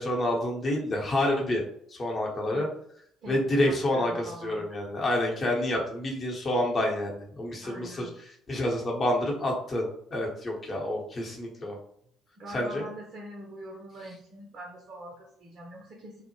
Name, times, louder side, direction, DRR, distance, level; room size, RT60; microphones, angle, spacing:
voice 1, 0.0-1.6 1.9-2.7 3.3-11.8 12.5-12.8, left 1 dB, 35° left, -1 dB, 0.8 m, -28 dB
voice 2, 3.2-4.7 7.6-8.1 12.4-16.2, right 1 dB, 45° right, 0 dB, 0.5 m, -44 dB
2.1 x 2.0 x 3.0 m, 0.66 s
figure-of-eight pair, 50°, 0 cm